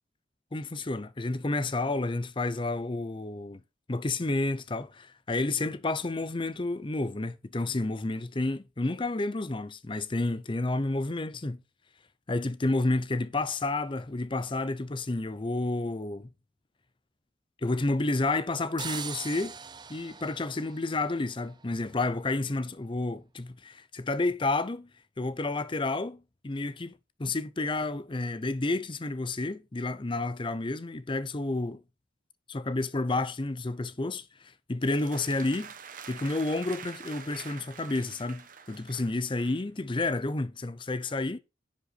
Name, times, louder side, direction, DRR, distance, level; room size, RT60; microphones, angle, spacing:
voice 1, 0.5-3.6 3.9-11.6 12.3-16.3 17.6-19.6 19.9-24.9 25.2-26.9 27.2-31.8 32.5-35.7 36.1-41.4, left 2 dB, 30° left, 0.6 m, -30 dB
sound 1, 18.8-21.6, right 6 dB, 25° right, 0.5 m, -41 dB
sound 2, 34.8-39.6, right 7 dB, 50° right, 1.1 m, -46 dB
10.5 x 5.2 x 4.1 m
head